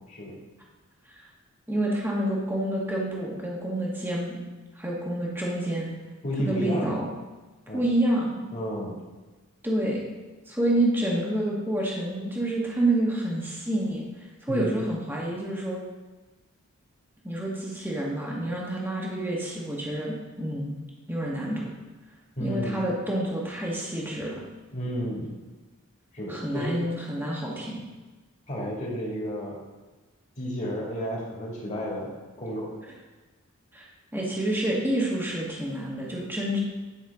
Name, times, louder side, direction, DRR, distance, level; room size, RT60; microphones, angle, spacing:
voice 1, 1.7-4.4 4.7-5.9 6.4-7.1 7.7-8.4 9.6-10.1 10.5-15.8 17.2-20.8 21.1-21.7 22.4-24.3 26.3-27.8 33.7-36.6, right 1 dB, 10° right, -3 dB, 1.3 m, -28 dB
voice 2, 6.2-7.0 7.7-7.8 8.5-8.9 14.5-14.8 22.4-22.8 24.7-25.3 26.1-26.8 28.5-29.6 30.4-32.1 32.4-32.7, equal, 35° left, -4 dB, 2.1 m, -31 dB
10.5 x 5.6 x 3.5 m, 1.3 s
head